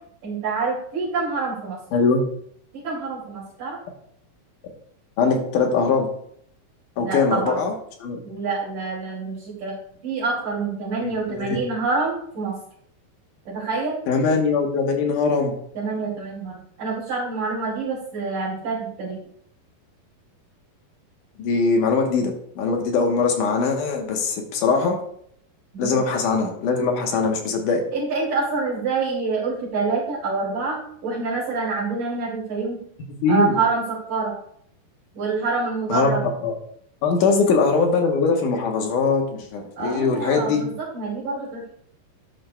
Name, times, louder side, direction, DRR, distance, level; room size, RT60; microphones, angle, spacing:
voice 1, 0.2-1.8 2.7-3.8 7.0-7.6 8.2-9.8 10.0-12.5 13.5-14.0 15.7-19.2 25.7-26.0 27.1-27.2 27.9-32.8 33.3-34.3 35.1-36.2 37.2-37.4 39.8-41.7, right 4 dB, 65° right, -8 dB, 4.1 m, -26 dB
voice 2, 1.9-2.2 5.2-6.1 7.0-7.7 8.0-8.2 11.0-11.6 14.1-15.5 21.4-25.0 25.8-27.8 33.2-33.5 35.9-36.2 36.4-36.5 37.0-40.6, left 4 dB, 70° left, 3 dB, 2.5 m, -21 dB
12.5 x 9.4 x 2.3 m, 0.67 s
omnidirectional pair, 4.1 m